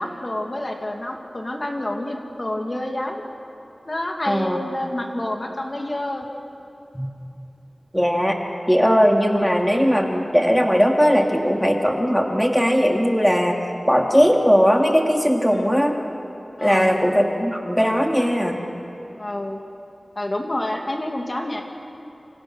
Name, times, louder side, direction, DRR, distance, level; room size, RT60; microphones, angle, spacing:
voice 1, 0.0-3.2 3.8-6.2 15.5-15.7 16.6-17.0 19.2-19.6 20.2-21.6, left 1 dB, 40° left, 2 dB, 2.6 m, -28 dB
voice 2, 4.3-4.6 6.9-7.1 7.9-8.4 8.7-13.6 13.9-16.0 16.6-18.6, equal, ahead, 1 dB, 2.9 m, -18 dB
28.0 x 26.0 x 6.4 m, 2.9 s
wide cardioid pair, 45°, 0 cm